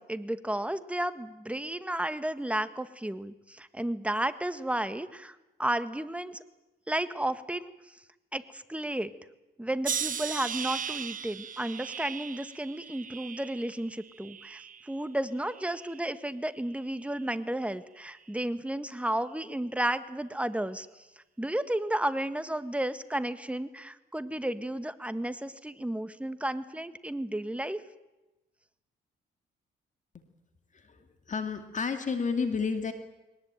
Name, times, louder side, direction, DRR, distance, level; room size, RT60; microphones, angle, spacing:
voice 1, 0.0-6.4 6.9-8.0 8.3-9.1 9.6-21.0 21.4-27.8, right 1 dB, 5° right, 11 dB, 1.6 m, -33 dB
sound 1, 9.8-15.0 15.4-16.1 16.9-17.2, right 7 dB, 45° right, 1.0 m, -38 dB
voice 2, 30.7-32.9, left 5 dB, 40° left, 7 dB, 2.3 m, -31 dB
22.0 x 19.5 x 9.1 m, 1.0 s
cardioid pair, 90°, 20 cm